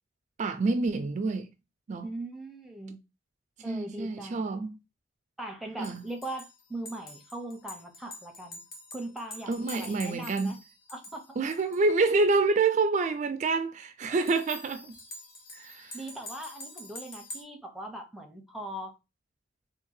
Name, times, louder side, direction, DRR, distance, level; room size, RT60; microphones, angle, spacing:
voice 1, 0.4-1.5 1.9-2.1 3.6-4.8 5.8-6.0 9.5-10.6 11.4-14.9 15.5-16.0, right 3 dB, 40° right, 0.3 m, -27 dB
voice 2, 2.0-3.0 3.6-4.5 5.4-8.6 8.9-10.6 10.9-11.4 15.9-19.0, right 1 dB, ahead, 0.7 m, -40 dB
sound 1, 5.8-11.9 14.1-17.4, left 2 dB, 50° left, 1.0 m, -46 dB
3.5 x 2.4 x 3.1 m
head